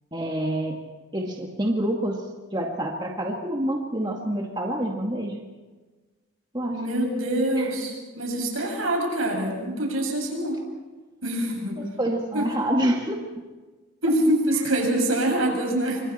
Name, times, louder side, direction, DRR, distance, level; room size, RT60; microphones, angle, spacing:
voice 1, 0.1-0.8 1.1-2.2 2.5-5.4 6.5-6.8 7.5-7.7 11.8-13.2, right 1 dB, 20° right, 0 dB, 2.1 m, -27 dB
voice 2, 6.7-10.6 11.2-11.8 12.3-12.4 14.0-16.0, right 1 dB, 80° right, 1 dB, 7.2 m, -25 dB
28.0 x 25.0 x 4.4 m, 1.3 s
head